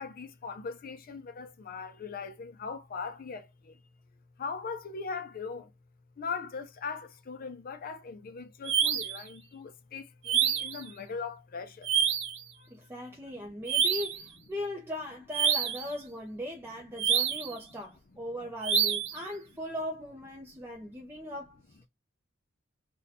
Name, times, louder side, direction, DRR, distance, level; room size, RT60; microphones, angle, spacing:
voice 1, 0.0-3.8 4.4-5.7 6.2-11.9 12.6-12.7 17.0-17.1 20.5-20.6, left 5 dB, 45° left, 0.4 m, -40 dB
sound 1, 8.6-9.2 10.2-10.8 11.8-12.4 13.7-14.2 15.3-15.9 17.0-17.5 18.6-19.2, right 8 dB, 65° right, 0.6 m, -27 dB
voice 2, 12.7-21.6, left 1 dB, 10° right, 0.5 m, -39 dB
2.7 x 2.2 x 4.0 m
head